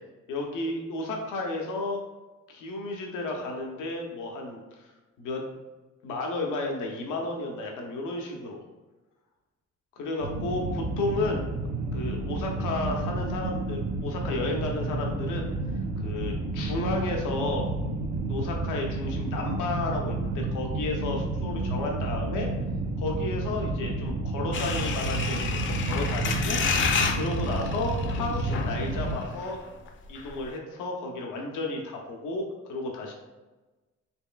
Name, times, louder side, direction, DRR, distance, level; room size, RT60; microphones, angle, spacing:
voice 1, 0.3-2.0 2.5-4.6 5.2-5.4 6.0-8.6 10.0-11.4 11.9-15.5 16.0-17.7 18.3-22.5 23.0-29.6 30.1-33.1, left 2 dB, 90° left, 1 dB, 0.7 m, -32 dB
sound 1, 10.2-29.2, right 2 dB, 35° right, 0.5 m, -30 dB
sound 2, 24.5-29.6 29.9-30.0 30.2-30.4, left 5 dB, 40° left, 0.4 m, -30 dB
4.3 x 3.1 x 2.2 m, 1.2 s
cardioid pair, 90°, 30 cm